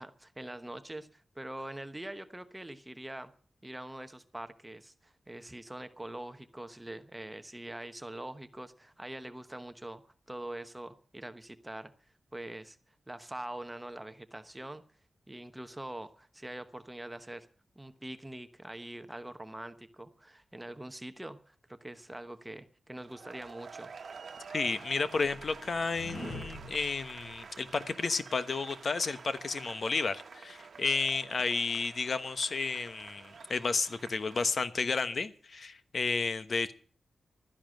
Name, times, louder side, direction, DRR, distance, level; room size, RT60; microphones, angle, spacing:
voice 1, 0.0-3.3 3.6-10.0 10.3-11.9 12.3-12.8 13.1-14.8 15.3-17.5 17.8-23.9, right 1 dB, 15° right, 1.0 m, -44 dB
sound 1, 23.0-34.6, right 5 dB, 65° right, 1.3 m, -49 dB
sound 2, 24.1-27.8, left 1 dB, 70° left, 7.8 m, -46 dB
voice 2, 24.5-36.7, left 4 dB, 55° left, 1.1 m, -32 dB
13.0 x 10.5 x 7.7 m
wide cardioid pair, 95°, 0 cm